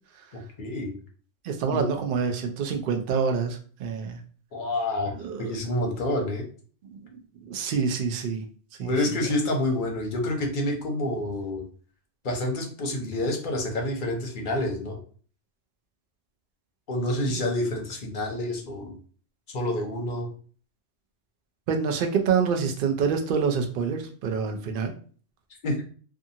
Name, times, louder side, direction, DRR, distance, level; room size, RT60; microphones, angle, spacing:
voice 1, 0.3-0.9 1.7-1.8 4.5-5.1 5.4-6.4 8.8-11.6 12.2-15.0 16.9-18.9 19.5-20.3 25.6-25.8, left 1 dB, 50° left, 2 dB, 0.7 m, -28 dB
voice 2, 1.4-4.2 5.2-5.6 6.8-7.0 7.5-8.4 8.8-8.9 21.7-24.9, right 6 dB, 60° right, 4 dB, 0.6 m, -26 dB
2.6 x 2.4 x 2.7 m, 0.43 s
omnidirectional pair, 1.2 m